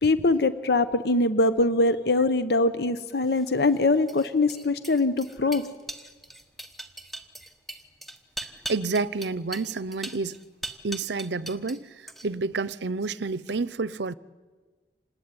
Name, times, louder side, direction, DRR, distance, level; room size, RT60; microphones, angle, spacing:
voice 1, 0.0-5.6, left 2 dB, 65° left, 0.9 m, -23 dB
sound 1, 3.3-11.8 12.1-12.5, right 2 dB, ahead, 1.2 m, -40 dB
voice 2, 8.7-10.4 10.8-11.9 12.2-14.1, right 3 dB, 80° right, 0.7 m, -29 dB
26.5 x 19.5 x 9.7 m
head